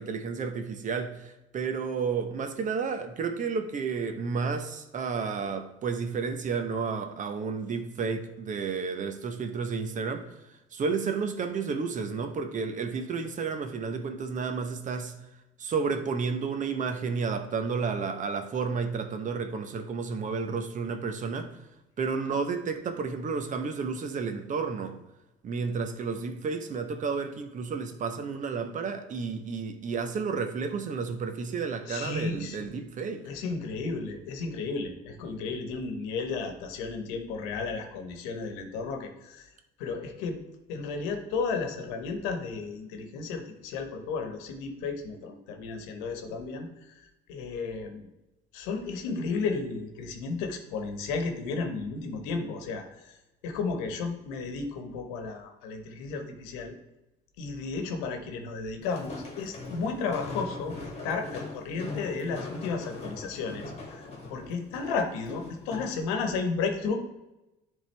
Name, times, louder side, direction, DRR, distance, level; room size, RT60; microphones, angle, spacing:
voice 1, 0.0-10.4 10.7-15.1 15.6-21.5 22.0-25.0 25.4-33.2, right 5 dB, 40° right, 0.9 m, -31 dB
voice 2, 31.9-32.8 33.3-39.5 39.8-40.4 40.7-46.7 47.3-48.1 48.5-52.8 53.4-56.7 57.4-64.0 64.3-66.9, left 4 dB, 90° left, 1.1 m, -33 dB
Walk footsteps, 58.8-66.0, left 3 dB, 35° left, 2.0 m, -41 dB
10.5 x 3.6 x 3.3 m
supercardioid pair, 95°, 19 cm